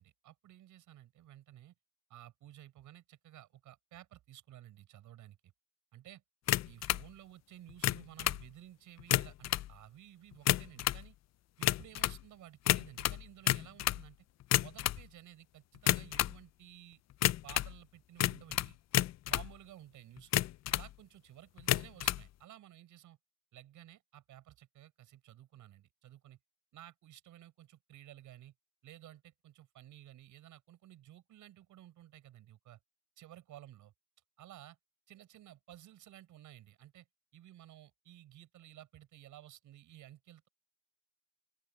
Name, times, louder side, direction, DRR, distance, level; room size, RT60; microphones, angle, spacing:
voice 1, 0.0-1.7 2.1-5.4 5.9-6.2 6.6-11.2 11.6-14.2 14.6-17.0 17.4-18.8 19.3-20.3 20.7-23.2 23.5-26.4 26.7-28.5 28.8-32.8 33.2-33.9 34.4-34.8 35.1-37.1 37.3-40.5, right 13 dB, 80° right, 5.8 m, -55 dB
sound 1, 6.5-7.1 7.7-8.4 9.0-9.7 10.3-11.0 11.6-12.2 12.7-14.0 14.4-15.0 15.8-16.4 17.2-17.7 18.2-19.5 20.2-20.9 21.6-22.2, left 14 dB, 60° left, 0.5 m, -30 dB
open air
cardioid pair, 90°, 30 cm